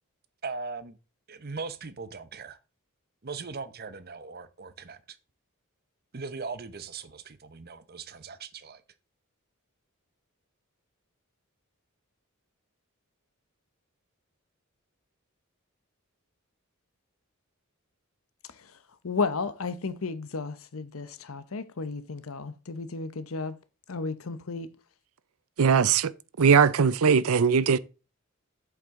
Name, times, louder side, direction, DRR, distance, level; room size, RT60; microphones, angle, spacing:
voice 1, 0.4-1.0 1.3-2.6 3.2-5.0 6.1-8.8, right 4 dB, 45° right, 0.9 m, -39 dB
voice 2, 19.0-23.6 23.9-24.7, left 4 dB, 70° left, 0.8 m, -33 dB
voice 3, 25.6-26.1 26.4-27.8, right 6 dB, 80° right, 0.5 m, -20 dB
8.2 x 7.3 x 3.7 m
head